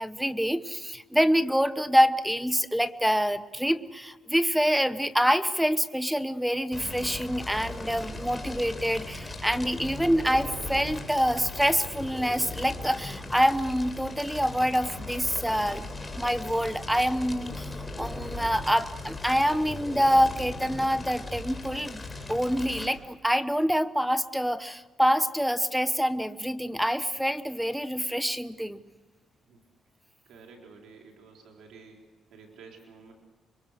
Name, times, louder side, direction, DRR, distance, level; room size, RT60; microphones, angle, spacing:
voice 1, 0.0-15.8 16.1-28.8, equal, ahead, 13 dB, 1.1 m, -26 dB
Fire, 6.7-22.9, left 2 dB, 15° left, 3.9 m, -38 dB
voice 2, 30.3-32.0 32.3-33.1, right 5 dB, 75° right, 1 dB, 4.1 m, -51 dB
26.0 x 24.0 x 6.6 m, 1.3 s
cardioid pair, 90°, 0 cm